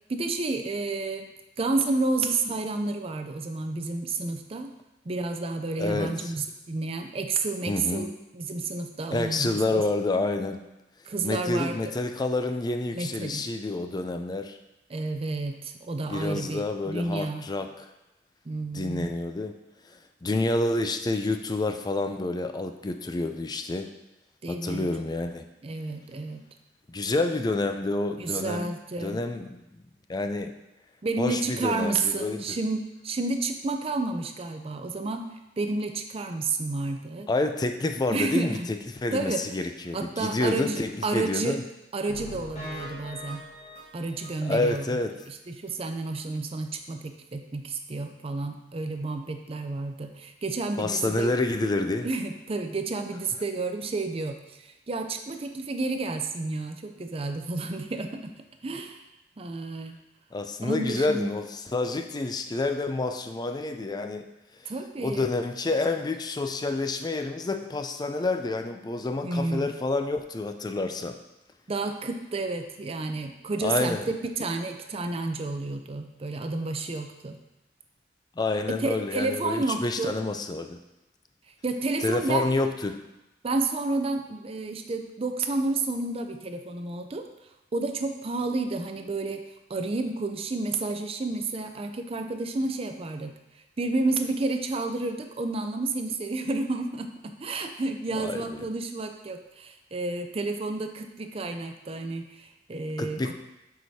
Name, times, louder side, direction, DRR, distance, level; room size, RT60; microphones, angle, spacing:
voice 1, 0.1-1.3 1.6-4.7 5.1-8.1 8.3-9.8 11.1-11.8 12.9-13.4 14.9-17.5 18.5-19.2 24.4-24.9 25.6-26.4 28.2-29.2 31.0-35.3 35.6-37.3 38.1-38.7 39.1-39.4 39.9-41.6 41.9-43.4 43.9-45.0 45.3-51.3 52.0-54.4 54.9-58.3 58.6-59.0 59.4-59.9 60.6-61.3 64.7-65.3 69.2-69.7 71.7-77.4 78.8-80.1 81.6-82.5 83.4-87.3 87.7-89.4 89.7-93.3 93.8-103.3, right 3 dB, 35° right, 6 dB, 0.5 m, -30 dB
voice 2, 5.8-6.3 7.7-8.1 9.1-10.6 11.2-14.6 16.1-17.8 18.7-19.6 20.2-23.9 24.5-25.5 26.9-28.7 29.0-29.6 30.1-30.5 31.2-32.6 37.3-41.6 44.4-45.1 50.8-52.1 60.3-64.3 65.0-71.2 73.6-74.0 78.4-80.8 82.0-83.0 98.1-98.6 103.0-103.3, left 2 dB, 25° left, 6 dB, 0.4 m, -28 dB
sound 1, 42.1-44.8 45.2-45.3 45.7-45.8 46.2-46.3, left 1 dB, 40° left, 1.4 m, -42 dB
7.5 x 4.8 x 2.8 m, 0.95 s
head